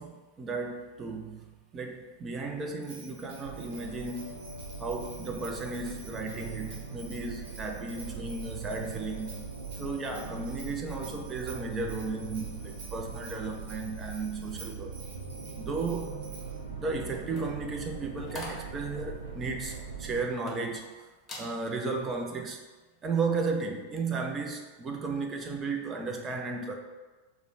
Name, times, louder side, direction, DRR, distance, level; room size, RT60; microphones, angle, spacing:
voice 1, 0.0-1.5 1.7-4.4 4.8-9.4 9.7-14.9 15.6-16.1 16.8-21.1 21.4-22.6 23.0-26.8, right 3 dB, 25° right, 3 dB, 0.6 m, -34 dB
Bell, 2.8-16.6, right 3 dB, 50° right, 1.0 m, -51 dB
sound 1, 3.4-20.3, right 5 dB, 70° right, 0.7 m, -41 dB
sound 2, 17.1-20.9 21.2-21.5 22.0-22.3, left 1 dB, 20° left, 1.0 m, -45 dB
4.8 x 2.2 x 4.7 m, 1.3 s
figure-of-eight pair, 90°, 0 cm